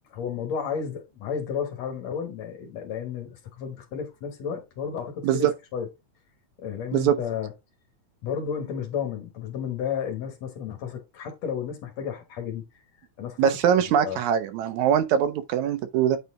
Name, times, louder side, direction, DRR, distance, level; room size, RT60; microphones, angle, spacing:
voice 1, 0.1-5.9 6.6-7.5 8.2-12.7 13.2-13.5 13.9-14.2, left 7 dB, 65° left, 2.4 m, -32 dB
voice 2, 13.4-16.2, right 9 dB, 75° right, 2.0 m, -22 dB
8.9 x 4.0 x 3.6 m
omnidirectional pair, 3.4 m